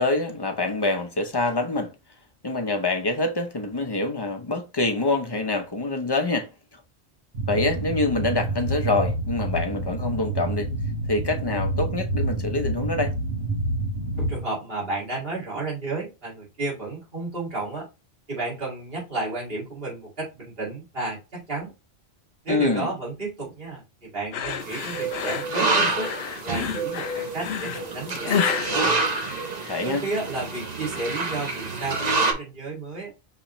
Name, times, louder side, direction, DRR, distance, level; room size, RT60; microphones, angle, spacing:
voice 1, 0.0-1.9 2.4-6.8 7.5-10.7 11.1-13.1 22.5-22.9 29.7-30.0, left 2 dB, 30° left, 0.5 m, -25 dB
sound 1, 7.3-14.4, right 1 dB, 90° right, 1.5 m, -28 dB
voice 2, 14.2-17.9 18.3-21.7 22.4-26.1 26.4-29.0 29.8-33.1, right 2 dB, 60° right, 2.5 m, -32 dB
sound 2, 24.3-29.9, left 7 dB, 75° left, 0.9 m, -30 dB
sound 3, 24.6-32.3, right 3 dB, 40° right, 0.9 m, -27 dB
5.5 x 3.2 x 3.0 m
omnidirectional pair, 1.1 m